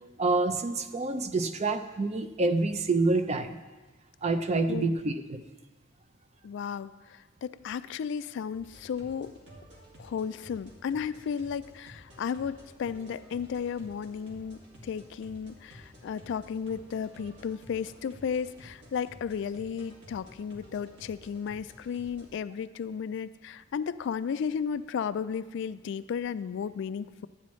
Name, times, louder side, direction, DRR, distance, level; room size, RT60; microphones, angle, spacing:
voice 1, 0.2-3.6 4.2-5.4, right 3 dB, 35° right, 8 dB, 0.5 m, -27 dB
voice 2, 4.7-5.0 6.4-9.3 10.0-27.3, left 7 dB, 65° left, 15 dB, 0.3 m, -34 dB
sound 1, 8.5-22.3, equal, 70° right, 2.3 m, -52 dB
13.0 x 9.2 x 3.1 m, 1.3 s
head